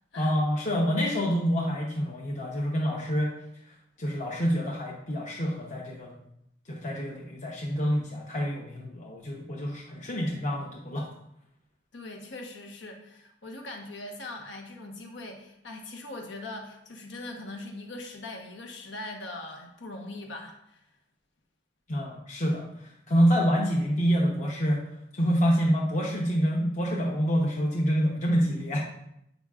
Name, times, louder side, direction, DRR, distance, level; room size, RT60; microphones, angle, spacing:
voice 1, 0.2-3.3 4.0-6.1 6.7-11.1 21.9-24.8 25.1-28.8, equal, 45° left, -3 dB, 0.9 m, -27 dB
voice 2, 11.9-20.8, left 2 dB, 85° left, 3 dB, 1.0 m, -41 dB
7.9 x 5.2 x 2.4 m, 0.77 s
head